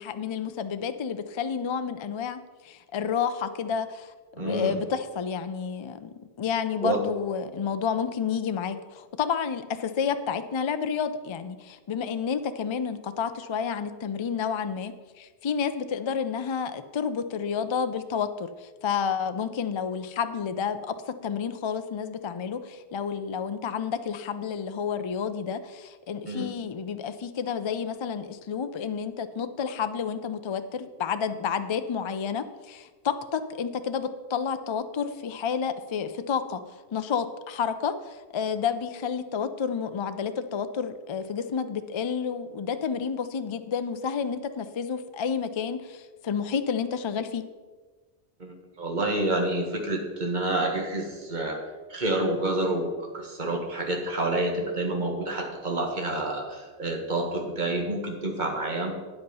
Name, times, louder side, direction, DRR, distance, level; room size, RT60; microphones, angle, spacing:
voice 1, 0.0-36.6 36.9-47.4, left 6 dB, 45° left, 10 dB, 0.4 m, -30 dB
voice 2, 4.3-4.8 6.8-7.0 26.3-26.5 48.4-51.6 51.9-58.9, right 2 dB, 45° right, 1 dB, 1.7 m, -28 dB
9.3 x 7.9 x 5.5 m, 1.3 s
omnidirectional pair, 1.1 m